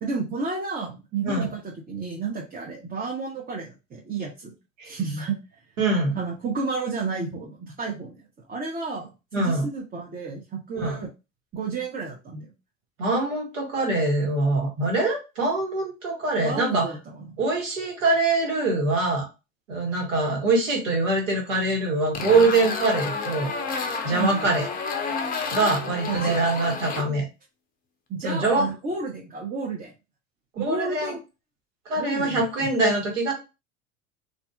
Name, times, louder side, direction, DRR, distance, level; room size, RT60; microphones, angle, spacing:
voice 1, 0.0-4.5 4.8-5.4 6.1-8.2 8.5-11.1 11.5-12.5 16.4-17.0 17.3-17.4 24.1-24.5 26.1-26.4 28.1-29.9 30.6-31.2 32.0-32.7, right 4 dB, 25° right, -2 dB, 0.7 m, -31 dB
voice 2, 5.8-6.2 9.3-9.7 10.7-11.0 13.0-16.9 17.4-19.3 19.7-23.5 24.0-24.7 25.5-27.2 28.2-28.7 30.5-31.1 31.9-33.3, right 2 dB, 80° right, 1 dB, 1.3 m, -24 dB
sound 1, 22.1-27.0, left 5 dB, 25° left, 0.5 m, -30 dB
2.5 x 2.4 x 2.2 m, 0.27 s
hypercardioid pair, 75°, 38 cm